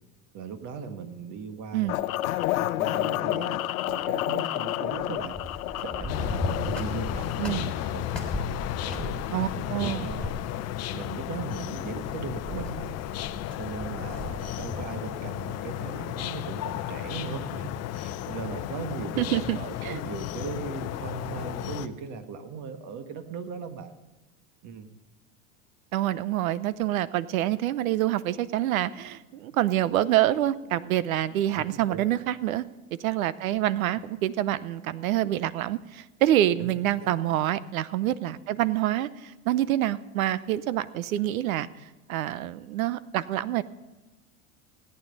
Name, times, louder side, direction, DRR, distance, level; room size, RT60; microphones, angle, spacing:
voice 1, 0.3-2.0 2.7-5.4 5.8-7.3 7.8-8.1 8.8-10.4 10.9-13.0 13.6-23.9 24.6-24.9 31.5-32.1 36.6-36.7 37.0-37.1, right 6 dB, 45° right, 8 dB, 1.6 m, -38 dB
sound 1, 1.9-7.8, left 14 dB, 85° left, 0.6 m, -30 dB
sound 2, 4.9-14.9, left 1 dB, ahead, 3.3 m, -38 dB
sound 3, 6.1-21.9, left 13 dB, 40° left, 0.7 m, -34 dB
voice 2, 7.4-7.7 9.3-10.1 19.2-20.0 25.9-32.6 33.0-41.7 42.1-43.6, right 13 dB, 85° right, 18 dB, 0.7 m, -26 dB
17.0 x 9.4 x 5.3 m, 1.1 s
supercardioid pair, 110°, 41 cm